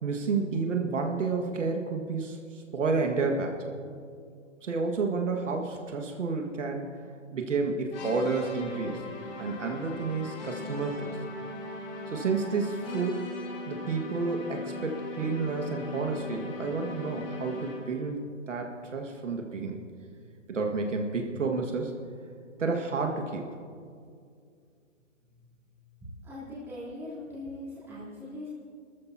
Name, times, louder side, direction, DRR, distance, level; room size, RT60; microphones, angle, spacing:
voice 1, 0.0-3.6 4.6-6.9 7.3-9.0 9.4-11.1 12.1-13.3 13.7-18.2 18.5-19.8 20.5-21.9 22.6-23.5, right 4 dB, 75° right, 3 dB, 1.8 m, -30 dB
sound 1, 7.9-18.0, left 2 dB, 50° left, 3.3 m, -39 dB
voice 2, 26.2-28.5, left 1 dB, 5° right, -10 dB, 3.4 m, -40 dB
29.5 x 14.0 x 2.8 m, 2.3 s
hypercardioid pair, 170°, 38 cm